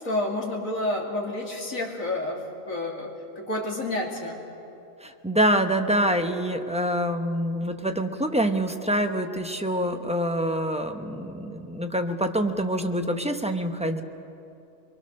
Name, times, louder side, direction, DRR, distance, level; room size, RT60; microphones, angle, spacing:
voice 1, 0.0-2.4 2.7-4.4, left 1 dB, 75° left, -1 dB, 3.1 m, -29 dB
voice 2, 5.0-14.0, equal, 5° right, 5 dB, 0.7 m, -26 dB
24.0 x 22.5 x 6.5 m, 2.8 s
omnidirectional pair, 1.4 m